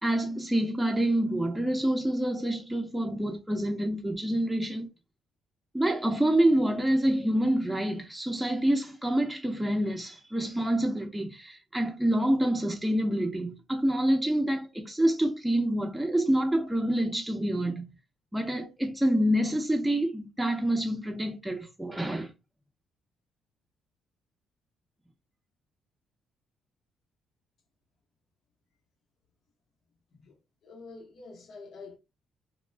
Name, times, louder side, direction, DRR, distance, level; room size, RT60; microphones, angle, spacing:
voice 1, 0.0-4.9 5.7-17.9 18.3-22.3, right 1 dB, 5° right, 0.7 m, -27 dB
voice 2, 30.1-32.0, left 3 dB, 60° left, 0.9 m, -47 dB
2.3 x 2.1 x 3.3 m
cardioid pair, 85°, 0 cm